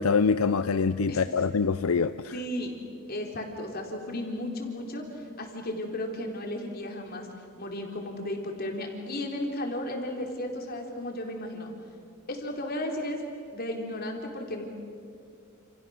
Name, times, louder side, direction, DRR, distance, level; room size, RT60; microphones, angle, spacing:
voice 1, 0.0-2.1, left 5 dB, 80° left, 12 dB, 0.6 m, -24 dB
voice 2, 1.1-1.4 2.3-2.7 3.1-7.3 7.6-11.7 12.3-13.2 13.5-14.6, left 1 dB, 45° left, 2 dB, 4.0 m, -34 dB
29.5 x 29.0 x 6.6 m, 2.4 s
head